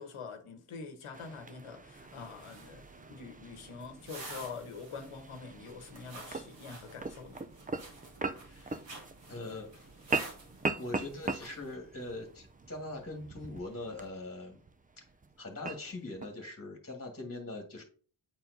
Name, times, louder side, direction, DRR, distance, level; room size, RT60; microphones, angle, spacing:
voice 1, 0.0-7.4, left 5 dB, 85° left, 1.2 m, -45 dB
sound 1, 1.1-16.4, right 3 dB, 20° right, 0.5 m, -41 dB
sound 2, 1.9-11.7, right 2 dB, 60° right, 2.1 m, -51 dB
voice 2, 8.5-8.9 9.3-9.9 10.8-14.6 15.0-15.1 15.4-17.8, left 2 dB, 30° left, 1.6 m, -42 dB
8.7 x 4.3 x 2.7 m
cardioid pair, 55°, 49 cm